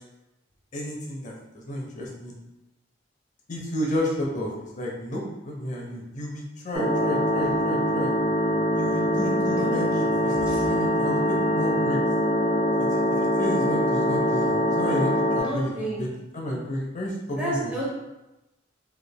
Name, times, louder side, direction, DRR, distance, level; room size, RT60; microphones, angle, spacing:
voice 1, 0.7-2.3 3.5-8.1 8.7-11.2 11.5-12.0 13.4-17.7, equal, 40° left, -1 dB, 0.6 m, -31 dB
sound 1, 6.7-15.4, equal, 25° left, 1.0 m, -23 dB
voice 2, 15.3-16.0 17.4-17.8, right 1 dB, 5° right, -7 dB, 0.9 m, -30 dB
3.3 x 3.3 x 2.2 m, 0.99 s
head